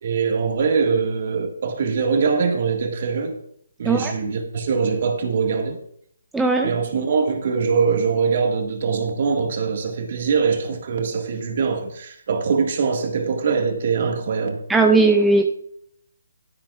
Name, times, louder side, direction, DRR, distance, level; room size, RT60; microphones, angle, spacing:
voice 1, 0.0-3.4 3.8-5.8 6.6-14.6, right 5 dB, 45° right, 1.7 m, -22 dB
voice 2, 6.3-6.7 14.7-15.6, right 3 dB, 5° right, 0.5 m, -17 dB
12.5 x 12.0 x 2.4 m
hypercardioid pair, 165°, 0 cm